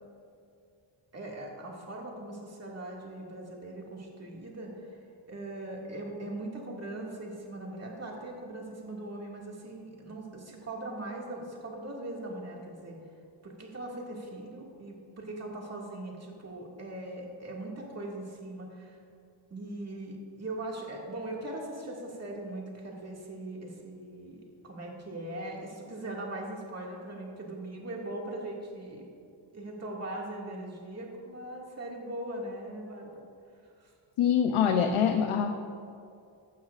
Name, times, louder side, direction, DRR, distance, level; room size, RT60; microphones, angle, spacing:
voice 1, 1.1-13.0 13.4-19.0 19.5-29.0 29.5-33.2 33.6-33.9, right 1 dB, 30° right, -2 dB, 2.1 m, -40 dB
voice 2, 34.2-35.5, left 8 dB, 85° left, 5 dB, 0.8 m, -24 dB
15.5 x 12.0 x 2.5 m, 2.4 s
wide cardioid pair, 140°, 49 cm